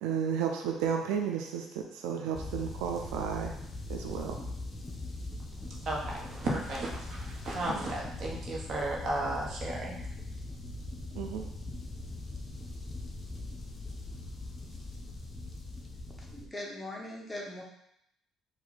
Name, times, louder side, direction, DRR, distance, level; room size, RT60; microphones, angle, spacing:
voice 1, 0.0-3.5 3.9-4.4 11.1-11.5, right 7 dB, 90° right, 3 dB, 0.5 m, -33 dB
sound 1, 2.3-16.5, left 2 dB, 30° left, 0.8 m, -41 dB
voice 2, 5.8-10.0, right 2 dB, 55° right, -3 dB, 1.3 m, -34 dB
voice 3, 16.2-17.6, left 1 dB, 10° left, -2 dB, 1.2 m, -40 dB
4.7 x 2.7 x 4.1 m, 0.76 s
supercardioid pair, 80°, 0 cm